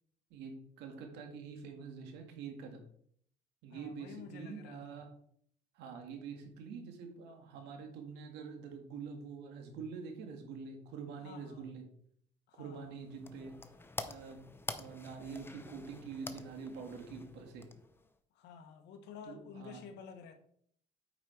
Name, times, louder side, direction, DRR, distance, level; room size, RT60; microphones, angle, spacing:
voice 1, 0.3-2.9 3.6-5.1 5.7-11.8 12.6-13.5 14.1-14.4 14.8-17.6 19.3-19.8, right 5 dB, 85° right, 1.9 m, -46 dB
voice 2, 3.7-5.0 11.2-11.7 12.5-13.0 18.3-20.3, left 6 dB, 85° left, 1.3 m, -51 dB
sound 1, 12.8-18.2, left 3 dB, 15° left, 0.7 m, -47 dB
8.8 x 5.1 x 4.5 m
cardioid pair, 110°, 17 cm